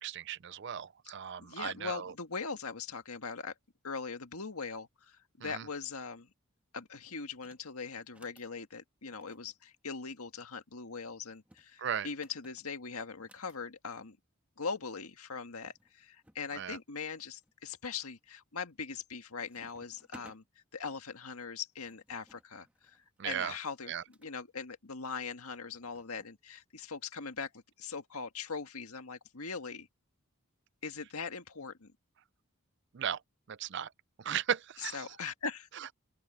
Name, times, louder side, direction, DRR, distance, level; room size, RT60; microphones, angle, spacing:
voice 1, 0.0-2.1 5.4-5.6 11.8-12.1 16.5-16.8 23.2-23.5 23.9-24.0 32.9-33.2 33.5-33.9 34.2-35.1, right 8 dB, 50° right, 0.4 m, -36 dB
voice 2, 1.4-3.5 3.8-6.3 6.7-14.2 14.6-20.4 20.7-29.9 30.8-31.9 34.8-35.7, left 5 dB, 80° left, 1.8 m, -41 dB
sound 1, 7.3-7.7 8.0-8.5 9.1-10.5 11.3-13.6 14.7-14.8 15.0-15.1 15.7-16.4 17.0-17.5 18.1-18.4 18.7-19.2 19.5-20.4 21.4-24.3 25.3-26.4, right 1 dB, 5° right, 1.7 m, -62 dB
open air
head